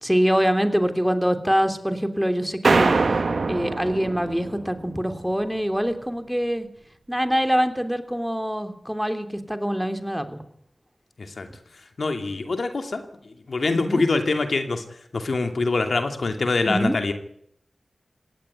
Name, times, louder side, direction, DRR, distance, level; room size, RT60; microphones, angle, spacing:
voice 1, 0.0-3.0 3.5-6.7 7.1-10.4 13.7-14.0 16.6-17.0, equal, 5° right, 7 dB, 3.2 m, -24 dB
sound 1, 2.6-5.1, right 3 dB, 75° right, 1.4 m, -23 dB
voice 2, 12.0-14.8 15.1-17.1, left 3 dB, 75° left, 6 dB, 2.6 m, -24 dB
18.0 x 17.5 x 9.7 m, 0.68 s
cardioid pair, 45°, 0 cm